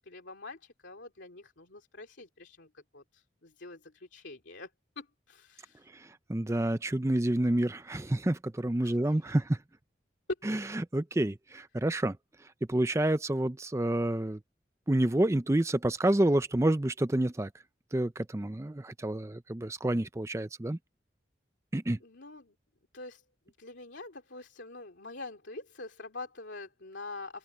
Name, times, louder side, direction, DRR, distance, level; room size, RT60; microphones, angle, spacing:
voice 1, 0.0-4.7 5.0-5.9 8.8-9.4 22.0-22.5 22.9-27.4, left 3 dB, 90° left, 2.6 m, -46 dB
voice 2, 5.9-9.6 10.5-10.6 10.9-14.4 14.9-17.5 17.9-20.8 21.7-22.0, right 1 dB, 15° right, 0.5 m, -29 dB
open air
head